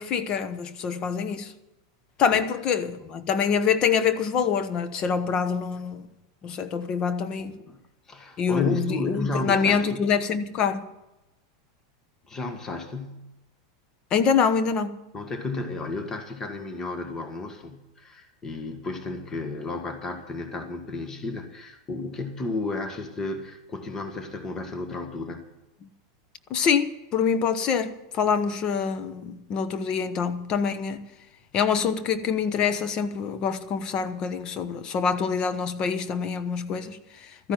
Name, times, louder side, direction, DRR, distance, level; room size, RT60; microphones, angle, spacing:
voice 1, 0.0-1.5 2.2-6.0 6.4-7.5 8.4-10.8 14.1-15.0 26.5-31.0 31.5-37.5, left 6 dB, 40° left, 1.1 m, -25 dB
voice 2, 7.4-7.8 8.1-10.0 12.3-13.3 15.1-25.4, left 3 dB, 25° left, 1.7 m, -33 dB
13.5 x 10.5 x 7.5 m
hypercardioid pair, 115°, 2 cm